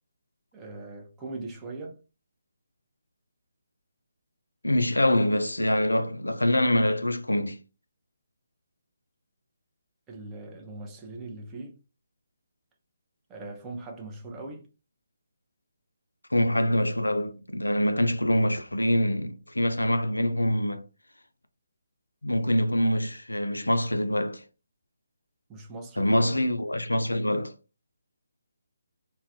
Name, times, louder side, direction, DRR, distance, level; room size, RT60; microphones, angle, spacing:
voice 1, 0.5-2.0 10.1-11.8 13.3-14.7 25.5-26.5, right 2 dB, 15° right, 0.6 m, -40 dB
voice 2, 4.6-7.6 16.3-20.8 22.2-24.4 26.0-27.5, left 1 dB, 90° left, 0.4 m, -25 dB
2.3 x 2.1 x 2.6 m
figure-of-eight pair, 145°, 0 cm